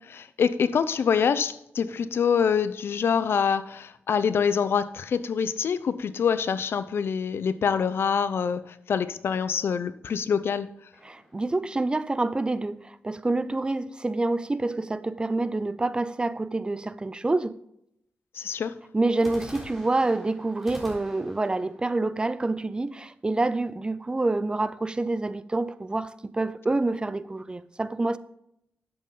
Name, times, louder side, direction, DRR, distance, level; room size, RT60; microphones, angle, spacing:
voice 1, 0.1-10.7 18.3-18.8, left 6 dB, 70° left, 0.6 m, -25 dB
sound 1, 10.9-12.4 19.2-23.1, equal, 5° left, 3.7 m, -47 dB
voice 2, 11.0-17.6 18.9-28.2, right 2 dB, 20° right, 0.5 m, -27 dB
11.5 x 7.7 x 3.9 m
cardioid pair, 95°, 4 cm